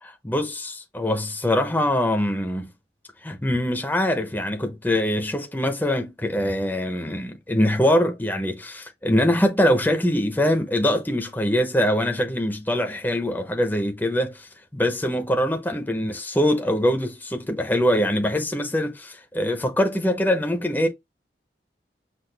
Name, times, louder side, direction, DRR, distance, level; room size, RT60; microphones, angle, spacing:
voice 1, 0.0-2.7 3.2-20.9, left 1 dB, 10° left, 0.7 m, -23 dB
5.9 x 2.4 x 3.2 m
head